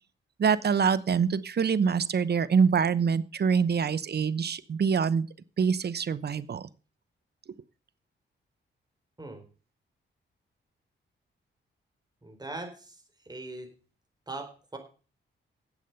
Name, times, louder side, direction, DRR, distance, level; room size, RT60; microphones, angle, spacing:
voice 1, 0.4-5.3 5.6-6.7, right 6 dB, 55° right, 16 dB, 0.9 m, -25 dB
voice 2, 12.2-13.7 14.3-14.8, right 2 dB, 20° right, 5 dB, 4.2 m, -40 dB
11.0 x 8.5 x 6.8 m, 0.37 s
cardioid pair, 90°, 20 cm